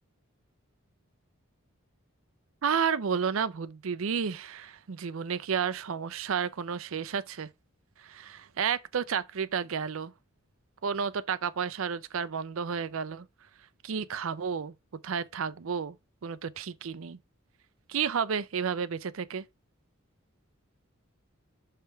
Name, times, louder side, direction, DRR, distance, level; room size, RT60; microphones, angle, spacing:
voice 1, 2.6-7.5 8.0-10.1 10.8-13.3 13.8-14.7 15.0-16.0 16.2-17.2 17.9-19.4, right 6 dB, 70° right, 0.5 m, -31 dB
6.6 x 3.3 x 4.5 m
head